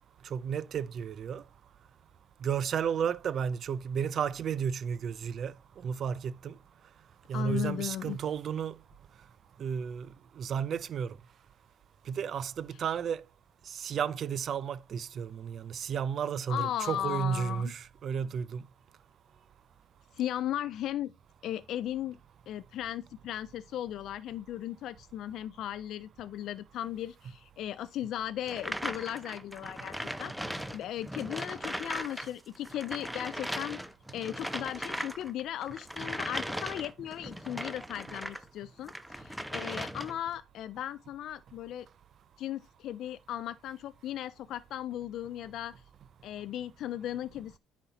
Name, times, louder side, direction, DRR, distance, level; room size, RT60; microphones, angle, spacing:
voice 1, 0.2-1.4 2.4-5.5 5.8-6.6 7.3-8.7 9.6-10.1 10.4-11.2 12.1-13.2 13.7-18.6, right 7 dB, 45° right, 0.5 m, -33 dB
voice 2, 7.3-8.2 16.5-17.7 20.1-21.1 21.4-22.2 22.5-30.3 30.7-33.8 34.1-41.9 42.4-45.7 46.2-47.6, left 11 dB, 60° left, 0.3 m, -36 dB
sound 1, 28.5-32.3 32.5-38.4 38.8-40.3, equal, ahead, 0.7 m, -38 dB
9.7 x 4.0 x 4.1 m
cardioid pair, 120°, 0 cm